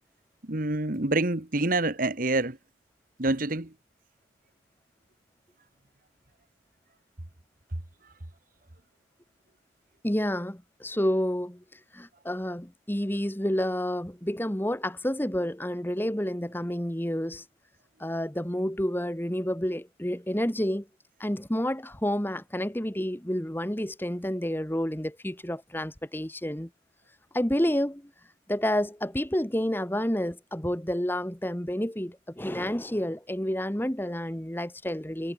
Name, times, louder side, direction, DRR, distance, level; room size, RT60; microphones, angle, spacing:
voice 1, 0.4-2.6 3.2-3.7, right 2 dB, 45° right, 1.7 m, -27 dB
voice 2, 10.0-11.6 11.9-17.4 18.0-20.9 21.2-26.7 27.3-28.0 28.5-35.3, equal, 10° left, 1.5 m, -29 dB
head